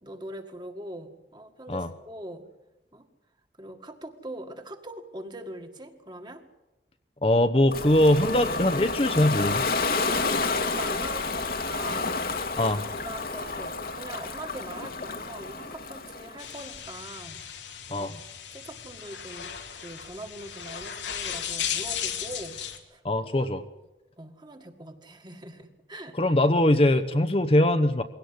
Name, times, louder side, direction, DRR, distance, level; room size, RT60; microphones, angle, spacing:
voice 1, 0.0-2.4 2.9-3.1 3.6-6.4 10.4-17.4 18.0-18.2 18.5-22.6 22.9-23.0 23.4-23.5 24.2-26.2, right 1 dB, 25° right, 6 dB, 1.9 m, -42 dB
voice 2, 7.2-9.6 12.6-12.8 17.9-18.1 23.0-23.6 26.2-28.0, left 1 dB, 30° left, 8 dB, 0.9 m, -22 dB
Ocean, 7.7-16.5, left 3 dB, 55° left, 1.6 m, -30 dB
sound 1, 16.4-22.8, left 9 dB, 90° left, 2.4 m, -36 dB
21.5 x 17.0 x 9.7 m, 1.0 s
head